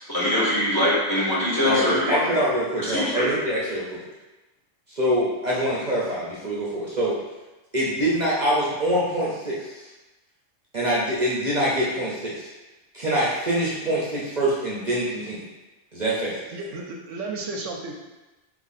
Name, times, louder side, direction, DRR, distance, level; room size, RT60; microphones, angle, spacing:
voice 1, 0.1-2.2 2.9-3.3, left 1 dB, 20° left, -7 dB, 0.9 m, -22 dB
voice 2, 1.6-4.0 4.9-7.2 7.7-9.9 10.7-12.5 12.9-15.4 15.9-16.4, equal, 40° right, -6 dB, 0.7 m, -25 dB
voice 3, 16.5-17.9, right 3 dB, 75° right, 1 dB, 0.9 m, -33 dB
3.7 x 3.1 x 4.1 m, 1.1 s
omnidirectional pair, 1.4 m